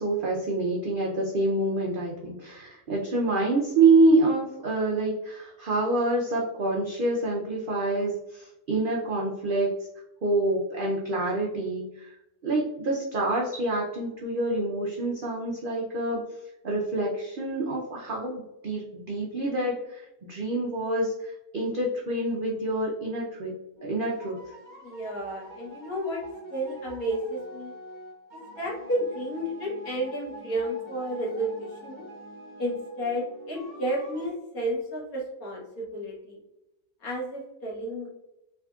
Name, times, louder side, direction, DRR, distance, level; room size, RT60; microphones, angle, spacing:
voice 1, 0.0-9.7 10.2-12.1 12.4-16.2 16.6-23.5 23.8-24.4, right 2 dB, 80° right, -2 dB, 0.4 m, -26 dB
sound 1, 23.8-34.3, right 1 dB, 35° right, 1.0 m, -45 dB
voice 2, 24.8-26.2 26.5-27.7 28.6-32.0 32.6-36.4 37.0-38.1, equal, 70° left, -5 dB, 1.7 m, -32 dB
3.5 x 3.4 x 2.3 m, 0.91 s
omnidirectional pair, 1.6 m